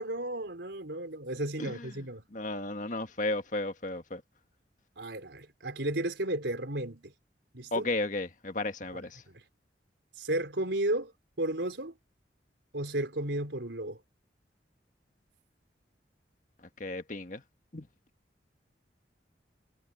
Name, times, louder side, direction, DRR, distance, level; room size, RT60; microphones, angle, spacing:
voice 1, 0.0-2.2 5.0-7.1 7.5-7.9 9.3-9.4 10.2-11.1 11.4-11.9 12.7-14.0, right 1 dB, 85° right, 3.9 m, -33 dB
voice 2, 1.6-2.0 2.3-4.2 7.7-9.2 16.8-17.4 17.7-17.9, left 2 dB, 45° left, 1.6 m, -34 dB
head